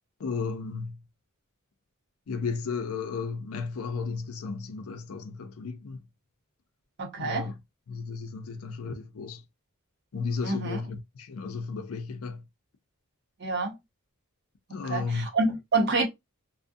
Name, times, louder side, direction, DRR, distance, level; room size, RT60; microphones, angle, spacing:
voice 1, 0.2-1.0 2.3-6.0 7.2-7.5 7.9-9.4 10.1-12.4 14.7-15.3, left 4 dB, 70° left, 0.5 m, -34 dB
voice 2, 7.0-7.5 10.4-10.8 13.4-13.8 14.9-16.0, right 3 dB, 50° right, 0.7 m, -27 dB
2.4 x 2.1 x 2.5 m
head